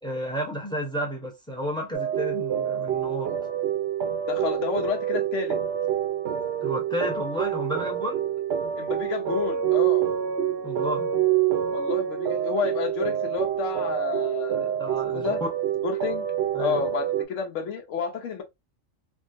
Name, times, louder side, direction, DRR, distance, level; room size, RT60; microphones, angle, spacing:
voice 1, 0.0-3.3 6.6-8.2 10.6-11.1 14.8-15.5 16.5-16.8, equal, 5° left, 0.7 m, -32 dB
sound 1, 1.9-17.2, right 10 dB, 65° right, 0.7 m, -27 dB
voice 2, 4.3-5.6 8.8-10.1 11.7-14.7 15.1-15.4 15.8-16.3 16.6-18.4, left 6 dB, 75° left, 1.0 m, -30 dB
3.4 x 2.2 x 2.5 m
omnidirectional pair, 1.3 m